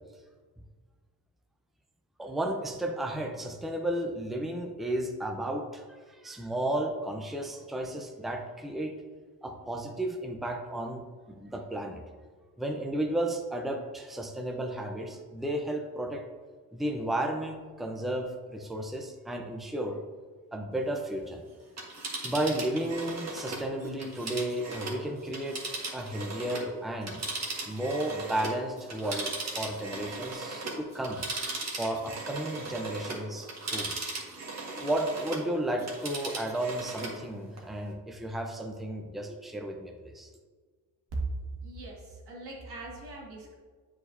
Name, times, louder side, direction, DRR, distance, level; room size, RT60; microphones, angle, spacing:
voice 1, 2.2-9.0 9.4-12.0 12.6-16.2 16.7-20.0 20.5-21.4 22.2-27.2 27.7-31.2 31.7-33.9 34.7-40.3, right 1 dB, ahead, 3 dB, 0.6 m, -33 dB
Telephone, 21.6-26.7 27.0-35.5 35.8-37.2 37.6-37.7, right 3 dB, 45° right, 1.5 m, -37 dB
voice 2, 41.6-43.6, right 2 dB, 85° right, -3 dB, 1.9 m, -40 dB
7.9 x 4.8 x 2.6 m, 1.5 s
cardioid pair, 75°, 38 cm